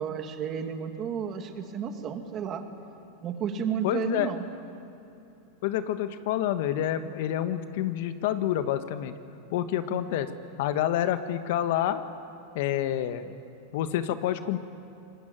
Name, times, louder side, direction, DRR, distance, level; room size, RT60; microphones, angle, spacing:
voice 1, 0.0-2.6 3.2-4.4 9.9-10.0, right 6 dB, 35° right, 6 dB, 2.5 m, -32 dB
voice 2, 3.8-4.3 5.6-9.1 9.5-10.3 10.6-12.0 12.5-13.3 13.7-14.6, left 11 dB, 65° left, 10 dB, 1.4 m, -28 dB
25.5 x 20.0 x 9.1 m, 2.8 s
hypercardioid pair, 110°, 0 cm